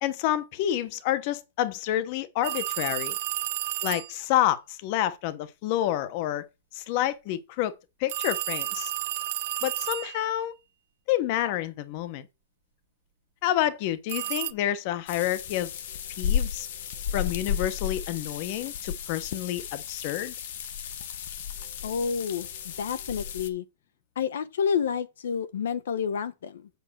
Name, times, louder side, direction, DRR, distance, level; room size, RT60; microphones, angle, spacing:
voice 1, 0.0-3.2 3.8-6.5 6.7-7.7 8.0-8.9 9.6-10.5 11.1-12.3 13.4-15.7 16.2-16.7 17.1-20.3, left 12 dB, 40° left, 0.9 m, -28 dB
sound 1, 2.4-4.2 8.1-10.4 14.1-14.5, right 14 dB, 50° right, 0.7 m, -31 dB
sound 2, 15.1-23.5, left 8 dB, 55° left, 1.3 m, -33 dB
voice 2, 21.8-23.6 24.2-26.7, left 7 dB, 80° left, 1.0 m, -29 dB
8.1 x 5.7 x 6.1 m
supercardioid pair, 165°, 0 cm